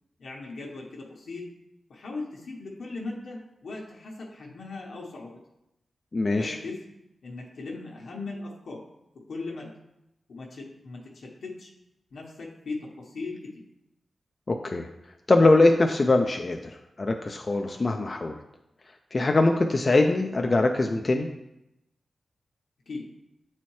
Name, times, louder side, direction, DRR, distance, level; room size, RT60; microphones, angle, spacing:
voice 1, 0.2-1.4 1.9-5.3 6.3-6.8 7.2-8.8 9.3-9.7 10.3-11.7 12.1-13.6 22.9-23.1, left 3 dB, 85° left, -3 dB, 1.0 m, -38 dB
voice 2, 6.1-6.6 14.5-14.9 15.3-16.6 17.0-18.4 19.1-21.3, left 2 dB, 35° left, 3 dB, 0.4 m, -22 dB
8.0 x 4.2 x 3.1 m, 0.87 s
wide cardioid pair, 145°, 0 cm